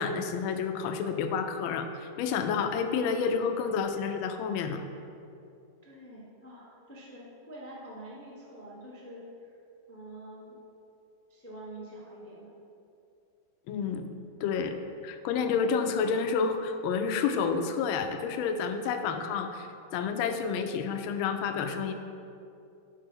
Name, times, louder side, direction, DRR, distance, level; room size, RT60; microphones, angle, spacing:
voice 1, 0.0-4.8 13.7-14.1 14.4-14.8 15.0-19.7 19.9-21.9, left 6 dB, 80° left, 7 dB, 1.4 m, -29 dB
voice 2, 5.8-9.5 9.9-10.6 11.3-12.5, right 1 dB, 15° left, -5 dB, 0.5 m, -46 dB
6.6 x 4.9 x 6.1 m, 2.7 s
omnidirectional pair, 2.3 m